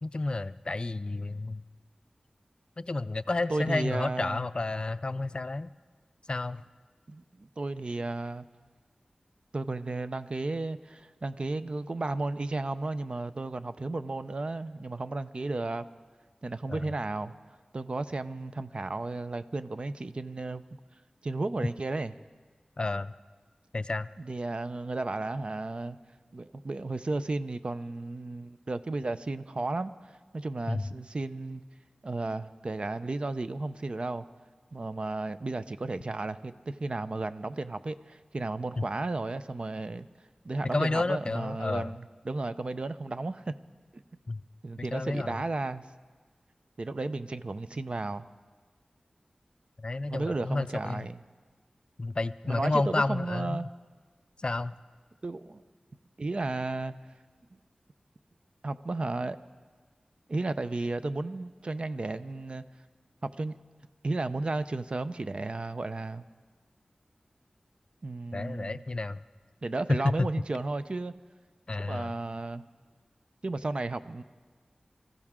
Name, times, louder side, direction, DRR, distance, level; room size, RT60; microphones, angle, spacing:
voice 1, 0.0-1.6 2.8-5.7 6.3-6.6 16.7-16.9 22.8-23.1 23.7-24.1 30.7-30.8 38.8-38.9 40.7-41.9 44.3-44.4 44.8-45.4 49.8-51.1 52.0-53.6 54.4-54.7 68.3-69.2 69.9-70.3 71.7-72.1, left 2 dB, 45° left, 15 dB, 0.4 m, -30 dB
voice 2, 3.5-4.5 7.1-8.5 9.5-15.8 16.4-17.3 17.7-20.6 21.2-22.1 24.2-26.0 26.3-31.6 32.0-34.3 34.7-40.1 40.4-43.6 43.9-44.0 44.6-45.8 46.8-48.3 50.1-51.2 52.5-53.7 55.2-55.6 56.2-56.9 58.6-59.4 60.3-62.6 63.2-63.5 64.0-66.2 68.0-68.8 69.6-71.1 71.8-72.6 73.4-74.2, right 2 dB, 50° right, 12 dB, 0.6 m, -33 dB
25.0 x 15.0 x 3.7 m, 1.5 s
wide cardioid pair, 80°, 2 cm